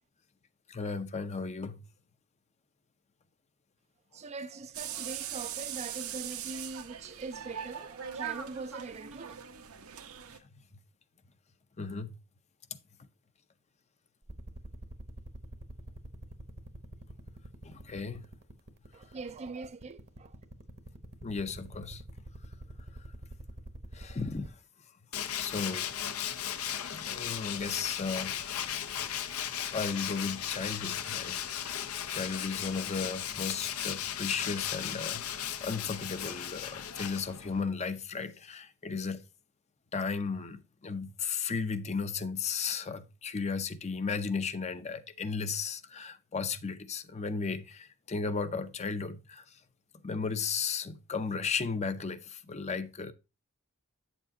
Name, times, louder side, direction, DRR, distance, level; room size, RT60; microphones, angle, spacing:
voice 1, 0.7-1.8 11.8-12.2 17.6-18.2 21.2-22.0 23.9-24.5 25.4-25.9 26.9-28.7 29.7-31.3 32.1-39.2 39.9-49.4 50.0-53.1, left 5 dB, 30° left, 0.6 m, -35 dB
voice 2, 4.1-9.4 18.9-20.4, right 3 dB, 30° right, 0.4 m, -42 dB
sound 1, 4.7-10.4, right 9 dB, 80° right, 1.0 m, -40 dB
sound 2, 14.3-24.5, right 1 dB, 45° right, 0.9 m, -44 dB
Tools, 25.1-37.6, left 10 dB, 80° left, 0.7 m, -36 dB
8.4 x 7.1 x 2.7 m
head